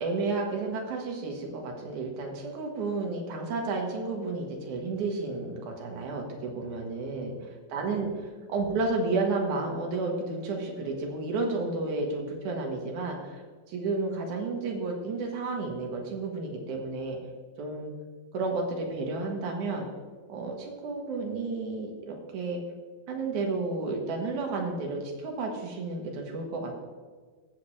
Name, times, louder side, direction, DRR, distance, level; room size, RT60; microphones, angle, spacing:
voice 1, 0.0-13.4 13.7-17.2 17.6-17.9 18.3-19.8 20.3-22.6 23.1-26.7, right 3 dB, 60° right, 1 dB, 2.5 m, -32 dB
15.0 x 7.6 x 3.2 m, 1.5 s
omnidirectional pair, 4.2 m